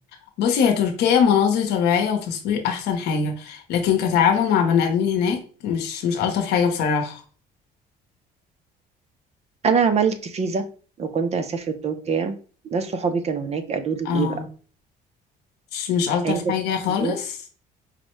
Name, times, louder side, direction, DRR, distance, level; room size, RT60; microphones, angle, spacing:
voice 1, 0.4-7.2 14.0-14.4 15.7-17.4, left 7 dB, 80° left, 4 dB, 0.8 m, -22 dB
voice 2, 9.6-10.6 11.0-12.3 12.7-14.4 16.2-16.5 17.0-17.1, right 5 dB, 40° right, 9 dB, 0.5 m, -24 dB
4.9 x 2.1 x 3.0 m, 0.39 s
cardioid pair, 110°, 17 cm